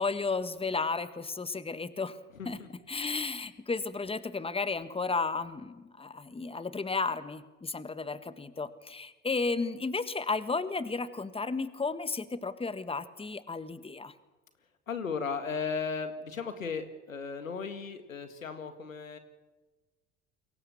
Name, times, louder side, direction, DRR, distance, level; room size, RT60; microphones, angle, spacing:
voice 1, 0.0-2.2 2.4-14.1, left 4 dB, 15° left, 13 dB, 1.6 m, -33 dB
voice 2, 14.9-19.2, left 5 dB, 90° left, 9 dB, 2.0 m, -36 dB
28.5 x 23.0 x 7.3 m, 1.2 s
hypercardioid pair, 65°, 39 cm